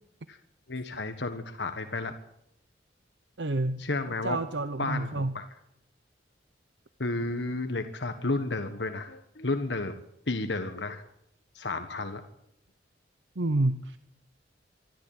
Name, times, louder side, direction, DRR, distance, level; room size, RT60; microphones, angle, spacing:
voice 1, 0.7-2.1 3.8-4.4 4.8-5.6 7.0-11.0 11.5-12.2, left 2 dB, 70° left, 7 dB, 1.5 m, -32 dB
voice 2, 3.4-3.8 4.2-5.3 13.4-14.0, right 2 dB, 75° right, 11 dB, 0.9 m, -28 dB
25.0 x 13.0 x 8.9 m, 0.76 s
head